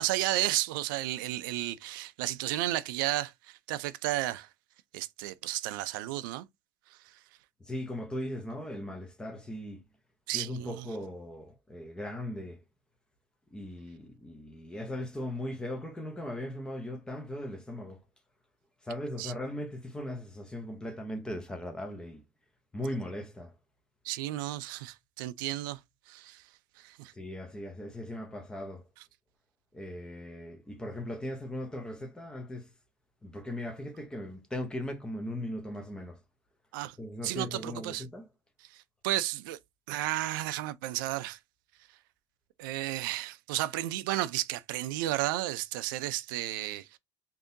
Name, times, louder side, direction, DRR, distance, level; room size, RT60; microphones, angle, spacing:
voice 1, 0.0-4.5 4.9-6.5 6.9-7.0 10.3-10.9 19.2-19.3 24.0-25.8 26.1-26.4 26.8-27.1 36.7-37.0 37.2-38.0 38.7-39.6 39.9-41.4 42.6-47.0, right 15 dB, 80° right, 0.4 m, -33 dB
voice 2, 7.6-9.8 10.3-12.6 13.5-18.0 18.8-22.2 22.7-23.5 27.1-28.9 29.7-32.7 33.2-36.2 37.0-38.3, left 1 dB, 5° left, 0.6 m, -38 dB
3.6 x 2.7 x 2.6 m
cardioid pair, 150°, 11 cm